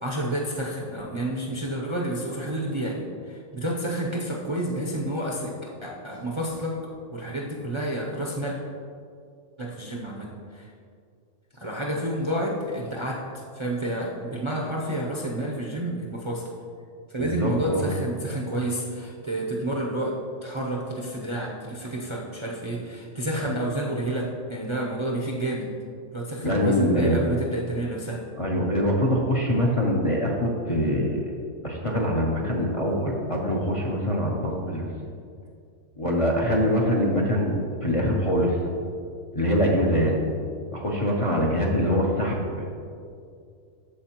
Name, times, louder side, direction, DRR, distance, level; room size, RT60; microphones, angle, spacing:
voice 1, 0.0-6.8 7.1-8.6 9.6-10.7 11.5-16.5 17.1-25.7 26.1-28.3, right 1 dB, 30° right, -3 dB, 0.6 m, -30 dB
voice 2, 17.2-17.9 26.4-27.2 28.4-31.3 31.6-34.9 36.0-38.6 39.3-40.2 40.7-42.7, equal, 35° left, -2 dB, 0.6 m, -24 dB
13.0 x 4.5 x 2.9 m, 2.4 s
omnidirectional pair, 1.3 m